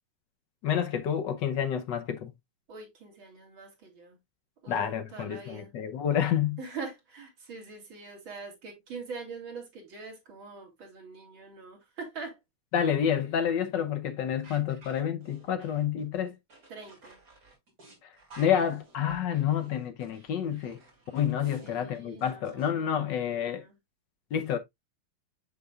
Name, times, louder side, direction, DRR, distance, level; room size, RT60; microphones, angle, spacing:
voice 1, 0.6-2.3 4.7-6.6 12.7-16.3 18.4-20.8 21.1-23.6 24.3-24.6, left 9 dB, 65° left, 1.3 m, -29 dB
voice 2, 2.7-4.2 4.6-4.8 5.1-5.7 6.6-12.4 16.7-17.2 21.6-23.7, right 4 dB, 75° right, 3.0 m, -43 dB
sound 1, 14.4-22.7, right 2 dB, 45° right, 3.1 m, -55 dB
6.8 x 6.7 x 2.3 m
omnidirectional pair, 2.2 m